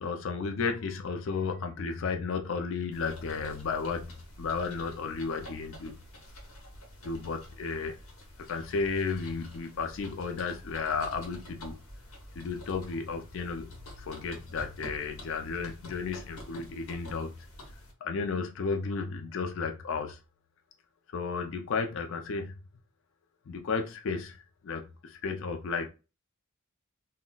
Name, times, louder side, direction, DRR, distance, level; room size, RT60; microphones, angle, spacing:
voice 1, 0.0-5.9 7.0-8.0 8.5-11.8 12.4-13.7 14.0-17.3 18.0-20.2 21.1-22.5 23.5-25.9, left 4 dB, 65° left, 5 dB, 0.4 m, -33 dB
sound 1, 2.9-17.9, left 1 dB, 80° left, 1.0 m, -48 dB
2.2 x 2.1 x 3.7 m, 0.31 s
head